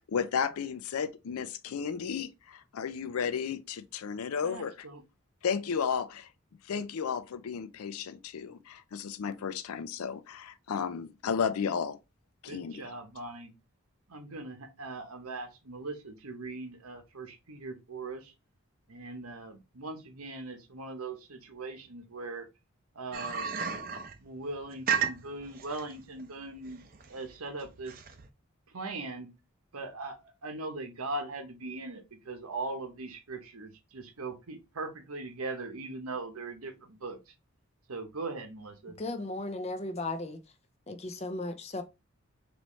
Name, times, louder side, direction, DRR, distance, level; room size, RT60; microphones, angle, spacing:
voice 1, 0.1-4.7 5.4-6.3 6.7-12.0 12.4-12.8, left 6 dB, 85° left, 0.4 m, -33 dB
voice 2, 4.4-5.0 12.5-13.5 14.1-18.3 18.9-22.5 22.9-23.6 24.2-28.0 28.7-29.3 29.7-37.3 37.9-39.0, right 3 dB, 85° right, 1.0 m, -40 dB
sound 1, 23.1-28.3, right 7 dB, 40° right, 0.5 m, -34 dB
voice 3, 39.0-40.4 40.9-41.8, left 2 dB, 30° left, 0.5 m, -35 dB
4.1 x 3.1 x 3.1 m
head